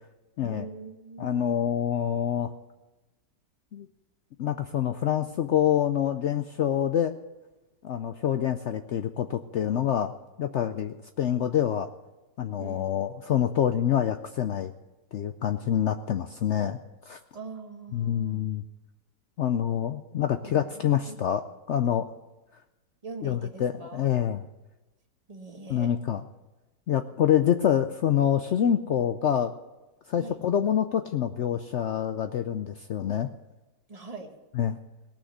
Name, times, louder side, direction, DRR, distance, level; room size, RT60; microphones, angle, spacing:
voice 1, 0.4-1.6 12.6-13.0 17.3-18.5 20.4-21.2 23.0-24.1 25.3-25.9 27.2-27.6 30.2-30.4 33.9-34.4, right 4 dB, 25° right, 4 dB, 1.2 m, -43 dB
voice 2, 1.2-2.5 3.7-3.9 4.4-7.1 7.8-10.1 10.4-11.9 12.4-14.7 15.1-16.8 17.1-17.2 17.9-18.6 19.4-21.4 21.7-22.1 23.2-24.4 25.7-26.2 26.9-29.5 30.1-33.3 34.6-34.8, left 10 dB, 85° left, 8 dB, 0.6 m, -26 dB
18.0 x 6.3 x 8.0 m, 1.1 s
omnidirectional pair, 1.8 m